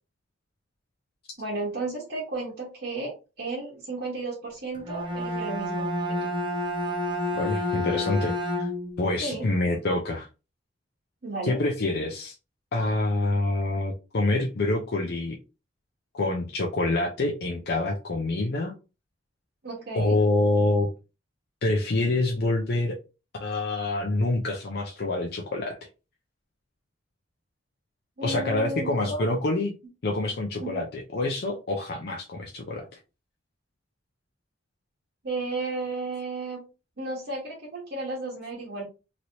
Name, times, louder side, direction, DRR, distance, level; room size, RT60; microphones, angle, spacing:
voice 1, 1.4-5.9 6.2-6.3 9.2-9.5 11.2-11.6 19.6-20.2 28.2-29.2 30.6-30.8 35.2-36.6 37.0-38.8, right 2 dB, 65° right, -5 dB, 1.2 m, -33 dB
Bowed string instrument, 4.7-9.0, left 1 dB, 25° right, 0.6 m, -29 dB
voice 2, 7.3-8.7 9.0-10.3 11.5-12.4 12.7-15.4 16.1-18.8 19.9-20.9 21.6-23.0 23.4-25.8 28.2-29.7 30.0-32.9, left 2 dB, 60° left, 1 dB, 0.5 m, -26 dB
3.0 x 2.9 x 2.7 m, 0.30 s
head